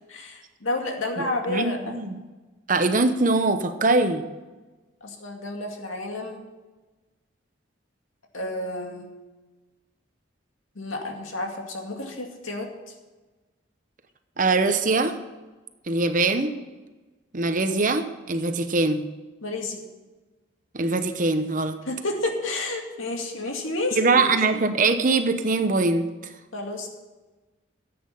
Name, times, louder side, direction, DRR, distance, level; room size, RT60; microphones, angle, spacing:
voice 1, 0.1-2.0 5.0-6.4 8.3-9.1 10.8-12.9 19.4-19.8 21.8-24.3 24.5-24.6 26.5-26.9, left 2 dB, 90° left, 2 dB, 2.3 m, -31 dB
voice 2, 1.2-2.2 2.7-4.2 14.4-15.1 15.9-16.5 17.3-19.1 20.7-21.8 24.0-26.1, right 3 dB, 40° right, 8 dB, 0.9 m, -22 dB
14.5 x 8.7 x 5.6 m, 1.2 s
head